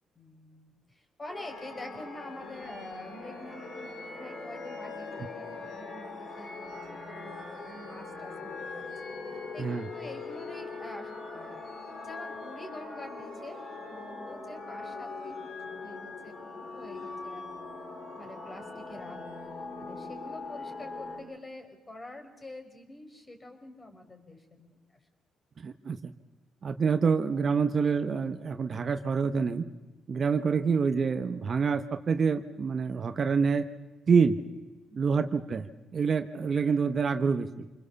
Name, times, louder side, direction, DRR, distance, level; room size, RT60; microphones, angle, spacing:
voice 1, 0.1-9.1 9.5-11.6 12.0-17.7 18.2-24.8 34.9-35.2, left 1 dB, 25° left, 5 dB, 4.5 m, -47 dB
sound 1, 1.3-21.2, left 3 dB, 60° left, 7.7 m, -41 dB
voice 2, 25.6-26.1 26.6-29.6 30.1-33.7 34.1-34.4 35.0-37.7, right 5 dB, 45° right, 9 dB, 1.1 m, -27 dB
27.0 x 21.0 x 7.0 m, 1.1 s
cardioid pair, 90°, 0 cm